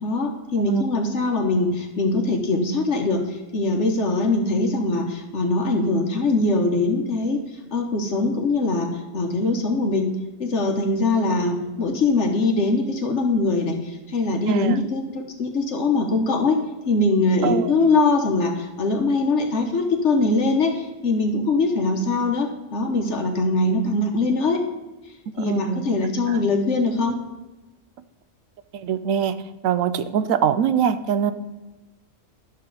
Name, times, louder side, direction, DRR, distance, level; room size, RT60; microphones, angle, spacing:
voice 1, 0.0-3.2 3.5-7.4 7.7-8.9 9.1-10.1 10.4-16.6 16.9-24.6 25.4-27.2, left 3 dB, 65° left, 3 dB, 1.3 m, -22 dB
voice 2, 14.5-14.8 17.4-17.7 25.3-25.9 26.3-26.4 28.7-29.4 29.6-31.3, right 8 dB, 90° right, 12 dB, 1.0 m, -23 dB
11.0 x 6.6 x 3.9 m, 1.2 s
omnidirectional pair, 1.3 m